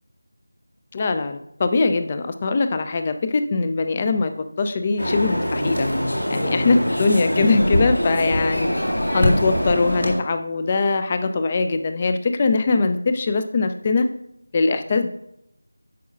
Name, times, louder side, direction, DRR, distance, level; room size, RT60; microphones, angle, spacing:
voice 1, 0.9-4.3 4.6-5.9 6.3-8.7 9.1-14.1 14.5-15.1, left 3 dB, 25° left, 9 dB, 0.4 m, -21 dB
sound 1, 5.0-10.1, equal, 85° left, 1.9 m, -23 dB
10.0 x 7.0 x 2.5 m, 0.79 s
figure-of-eight pair, 170°, 0 cm